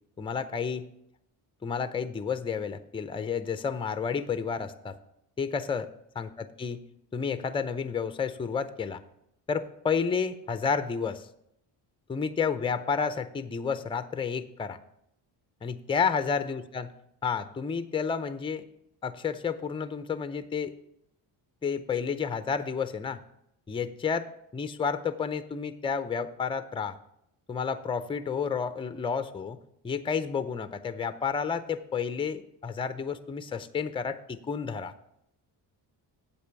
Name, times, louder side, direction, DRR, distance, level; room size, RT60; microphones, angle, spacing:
voice 1, 0.2-0.9 1.6-5.0 5.4-5.9 6.2-6.8 7.1-9.0 9.5-11.3 12.1-14.8 15.6-16.9 17.2-18.6 19.0-20.7 21.6-23.2 23.7-27.0 27.5-29.6 29.8-34.9, left 6 dB, 10° left, 12 dB, 0.5 m, -31 dB
8.5 x 7.4 x 4.6 m, 0.76 s
cardioid pair, 95°, 44 cm